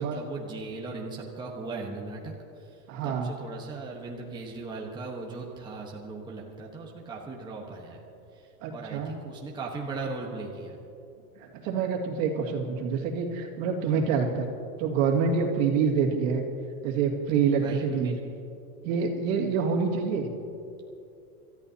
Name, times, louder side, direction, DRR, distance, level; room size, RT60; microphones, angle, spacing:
voice 1, 0.0-8.0 8.3-10.8 13.9-14.1 17.6-18.2, right 3 dB, 10° right, -2 dB, 1.3 m, -38 dB
voice 2, 2.9-3.3 8.6-9.1 11.4-14.5 14.8-16.4 16.8-18.1 18.8-20.3, right 6 dB, 55° right, 1 dB, 2.4 m, -26 dB
27.5 x 14.0 x 2.9 m, 2.7 s
supercardioid pair, 140°, 46 cm